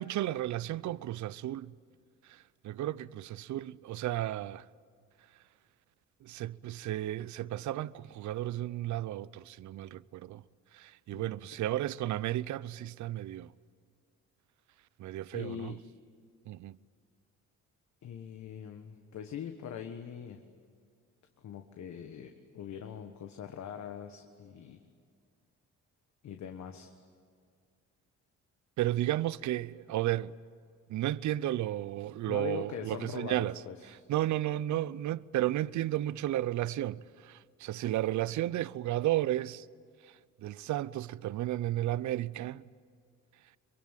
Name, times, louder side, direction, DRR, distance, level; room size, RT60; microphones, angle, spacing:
voice 1, 0.0-1.7 2.6-4.6 6.2-10.4 10.7-13.5 15.0-15.7 16.5-16.8 28.8-30.3 30.9-33.6 34.1-39.6 40.4-42.6, right 14 dB, 70° right, 0.6 m, -33 dB
voice 2, 15.3-15.8 18.0-20.4 21.4-24.8 26.2-26.9 32.3-34.0, left 8 dB, 65° left, 1.5 m, -42 dB
23.5 x 22.0 x 9.0 m
cardioid pair, 90°, 30 cm